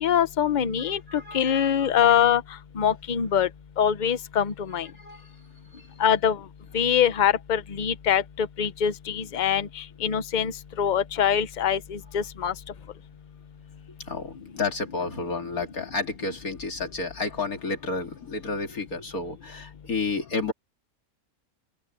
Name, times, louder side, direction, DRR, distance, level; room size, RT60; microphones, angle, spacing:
voice 1, 0.0-1.0 1.3-2.4 2.8-3.5 3.8-4.9 6.0-6.4 6.7-10.5 10.8-12.5, left 8 dB, 40° left, 0.8 m, -23 dB
voice 2, 0.8-2.1 4.8-5.3 5.7-5.9 14.0-20.5, left 3 dB, 70° left, 3.2 m, -31 dB
omnidirectional pair, 1.6 m